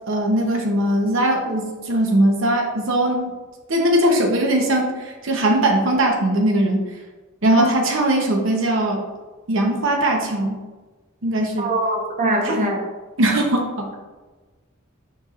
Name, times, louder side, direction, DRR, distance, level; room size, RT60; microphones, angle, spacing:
voice 1, 0.1-3.3 3.7-6.8 7.4-9.0 9.5-10.6 11.2-11.7 12.4-12.6 13.2-13.9, right 1 dB, 65° right, 2 dB, 0.9 m, -20 dB
voice 2, 11.6-12.8, right 1 dB, 35° right, 0 dB, 0.9 m, -22 dB
6.7 x 5.9 x 2.5 m, 1.2 s
head